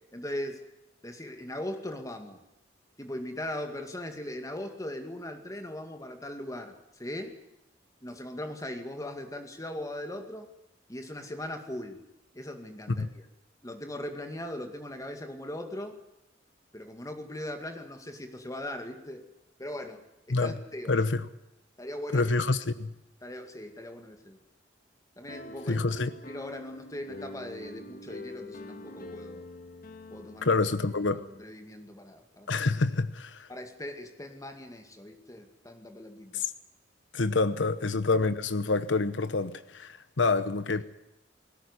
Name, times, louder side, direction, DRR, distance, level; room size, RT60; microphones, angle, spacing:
voice 1, 0.1-0.6 1.0-2.4 3.0-6.7 7.0-7.3 8.0-10.5 10.9-12.0 12.3-13.3 13.6-16.0 16.7-19.2 19.6-20.0 20.3-21.0 21.8-22.3 23.2-24.4 25.2-25.8 26.2-29.4 30.1-30.6 31.4-32.5 33.5-36.4, left 1 dB, 20° left, 2.2 m, -39 dB
voice 2, 20.9-21.2 22.1-22.9 25.7-26.1 30.4-31.2 32.5-33.5 36.3-36.5 37.1-40.8, left 3 dB, 75° left, 1.0 m, -27 dB
sound 1, 25.2-31.4, left 2 dB, 50° left, 1.6 m, -45 dB
19.5 x 17.5 x 9.8 m
head